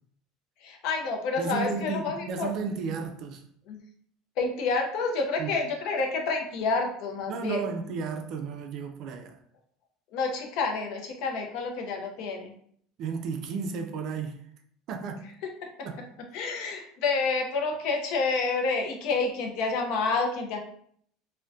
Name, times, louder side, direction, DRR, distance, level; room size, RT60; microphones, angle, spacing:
voice 1, 0.6-2.5 3.7-3.8 4.4-7.6 10.1-12.5 15.6-16.0 16.3-20.6, left 4 dB, 60° left, 0.5 m, -29 dB
voice 2, 1.4-3.4 5.4-5.5 7.3-9.4 13.0-14.4 14.9-15.3 15.9-16.0, right 5 dB, 50° right, 0.3 m, -33 dB
2.5 x 2.1 x 2.3 m
cardioid pair, 145°, 0 cm